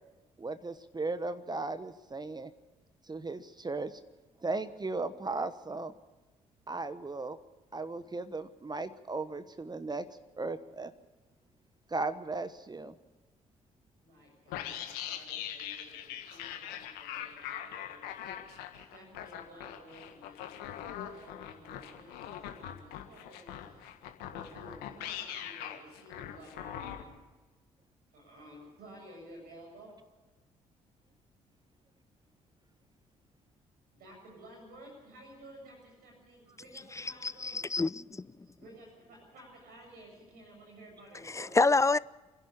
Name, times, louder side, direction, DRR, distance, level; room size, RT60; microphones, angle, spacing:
voice 1, 0.4-2.5 3.1-4.0 4.4-5.9 6.7-7.4 7.7-10.1 10.4-10.9 11.9-12.9, right 3 dB, 25° right, 1.2 m, -36 dB
voice 2, 14.0-18.1 18.7-23.8 24.2-27.1 28.1-29.9 33.9-37.6 38.4-41.6, right 1 dB, 70° right, 7.6 m, -53 dB
sound 1, 14.5-27.0, left 10 dB, 75° left, 1.7 m, -42 dB
voice 3, 36.9-38.3 41.2-42.0, left 3 dB, 20° left, 0.6 m, -28 dB
28.0 x 11.0 x 8.4 m
hypercardioid pair, 45°, 16 cm